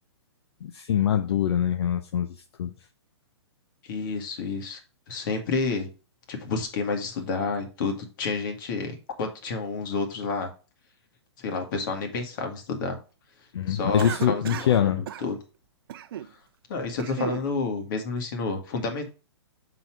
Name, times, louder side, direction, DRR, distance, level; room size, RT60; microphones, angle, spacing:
voice 1, 0.6-2.3 2.6-2.7 13.5-15.0, left 9 dB, 70° left, 0.8 m, -24 dB
voice 2, 3.8-4.8 5.1-5.9 6.3-10.5 11.4-13.0 13.7-15.4 16.7-19.1, left 4 dB, 50° left, 2.0 m, -30 dB
Cough, 14.0-14.8 15.1-15.3 15.9-16.3 16.8-17.5, right 11 dB, 55° right, 0.6 m, -35 dB
6.8 x 4.3 x 4.5 m
hypercardioid pair, 150°, 14 cm